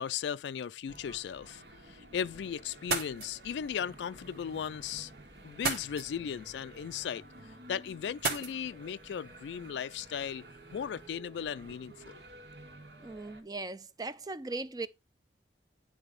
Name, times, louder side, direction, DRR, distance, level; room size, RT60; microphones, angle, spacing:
voice 1, 0.0-5.1 5.4-10.5 10.7-12.2, left 8 dB, 80° left, 0.3 m, -37 dB
sound 1, 0.9-13.4, right 1 dB, 75° right, 2.1 m, -52 dB
sound 2, 2.7-11.1, right 4 dB, 60° right, 1.8 m, -41 dB
voice 2, 13.0-14.9, right 3 dB, 20° right, 0.4 m, -38 dB
10.0 x 3.4 x 5.1 m
head